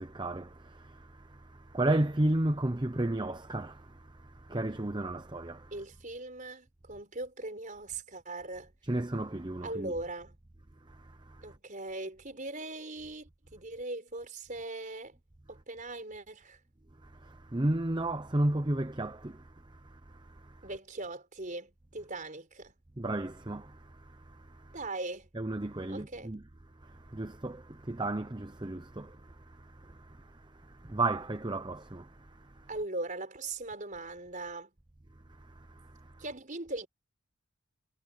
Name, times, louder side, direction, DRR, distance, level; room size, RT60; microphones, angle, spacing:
voice 1, 0.0-5.7 8.8-10.0 10.9-11.6 17.0-20.7 23.0-24.8 25.3-26.4 26.8-32.7 35.3-36.2, right 1 dB, 20° right, 0.8 m, -34 dB
voice 2, 5.7-8.7 9.6-10.3 11.4-15.2 15.5-16.6 20.6-22.7 24.7-25.3 25.9-26.3 32.7-34.7 36.2-36.9, right 2 dB, 35° right, 5.1 m, -40 dB
head